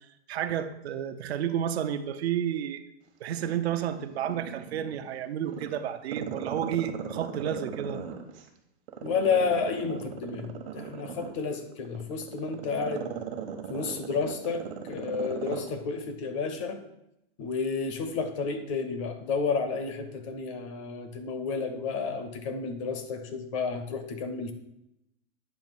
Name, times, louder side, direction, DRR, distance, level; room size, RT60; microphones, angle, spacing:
voice 1, 0.3-2.8 3.2-8.0, right 9 dB, 75° right, 9 dB, 0.7 m, -31 dB
Growling, 3.3-5.0 5.4-8.4 8.9-15.7 16.0-16.1, right 8 dB, 60° right, 1.2 m, -37 dB
voice 2, 9.0-13.2 13.7-16.8 17.4-24.5, left 5 dB, 30° left, 7 dB, 0.6 m, -31 dB
9.0 x 3.0 x 5.9 m, 0.83 s
supercardioid pair, 175°, 33 cm